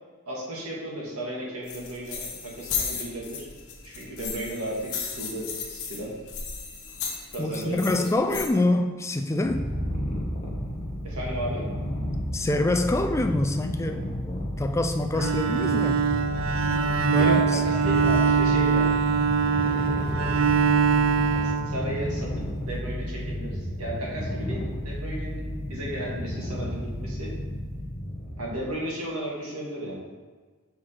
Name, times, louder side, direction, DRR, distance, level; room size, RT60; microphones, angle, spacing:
voice 1, 0.3-3.5 3.8-6.1 7.3-8.0 8.3-8.4 11.0-11.6 17.1-19.0 19.6-20.3 21.3-27.3 28.4-30.1, right 1 dB, 90° right, -4 dB, 1.8 m, -34 dB
sound 1, 1.6-8.5, left 6 dB, 75° left, 1.1 m, -35 dB
voice 2, 7.4-9.7 12.3-16.0 17.0-17.6, left 2 dB, 15° left, 6 dB, 0.3 m, -26 dB
Purr, 9.4-28.7, equal, 30° left, 1.2 m, -32 dB
Bowed string instrument, 15.1-22.3, right 5 dB, 65° right, 0.4 m, -23 dB
6.1 x 4.8 x 4.3 m, 1.4 s
head